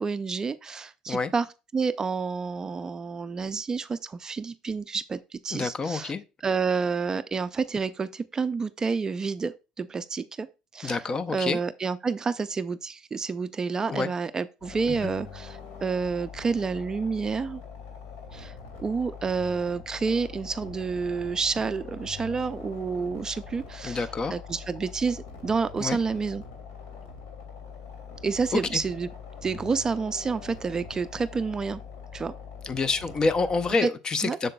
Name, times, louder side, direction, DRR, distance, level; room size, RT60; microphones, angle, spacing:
voice 1, 0.0-1.5 1.7-6.1 6.4-10.5 10.7-11.0 11.3-17.6 18.3-18.5 18.8-24.1 24.3-26.4 28.2-29.1 29.4-31.8 32.1-32.3 33.8-33.9 34.2-34.4, right 5 dB, 25° right, 0.4 m, -29 dB
voice 2, 5.5-6.2 10.8-11.6 13.9-14.1 14.9-15.1 23.8-24.3 25.8-26.0 28.5-28.8 32.6-34.5, left 4 dB, 30° left, 0.5 m, -27 dB
sound 1, 14.6-33.7, left 6 dB, 75° left, 2.1 m, -43 dB
7.5 x 6.6 x 2.2 m
supercardioid pair, 90°, 3 cm